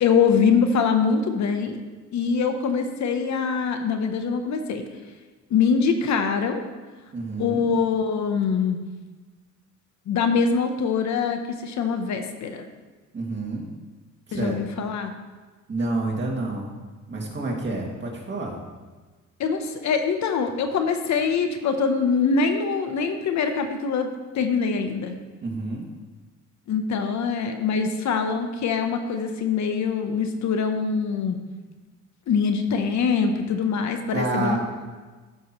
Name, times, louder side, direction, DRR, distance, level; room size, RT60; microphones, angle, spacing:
voice 1, 0.0-1.8 2.1-4.8 5.5-6.6 7.4-8.8 10.1-12.7 14.3-15.1 19.4-24.1 24.3-25.1 26.7-31.4 32.3-34.6, left 5 dB, 65° left, 6 dB, 0.9 m, -23 dB
voice 2, 7.1-7.6 13.1-13.7 14.3-14.5 15.7-16.7 17.1-18.6 25.4-25.9 34.1-34.6, right 2 dB, 35° right, -1 dB, 2.2 m, -28 dB
13.0 x 6.3 x 3.1 m, 1.3 s
cardioid pair, 90°, 30 cm